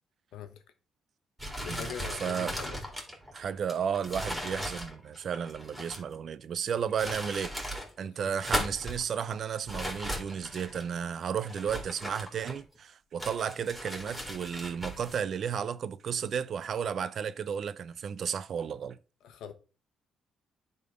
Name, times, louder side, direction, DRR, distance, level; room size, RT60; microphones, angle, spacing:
sound 1, 1.4-6.2 6.8-7.9 8.3-9.0 9.7-10.9 11.5-12.8 13.2-15.2, equal, 5° right, 2.8 m, -37 dB
voice 1, 1.6-2.8 8.2-8.3 19.2-19.5, left 8 dB, 85° left, 1.1 m, -42 dB
voice 2, 2.2-2.6 3.3-7.5 8.0-19.0, right 7 dB, 60° right, 0.5 m, -33 dB
9.3 x 3.9 x 5.0 m
cardioid pair, 90°, 0 cm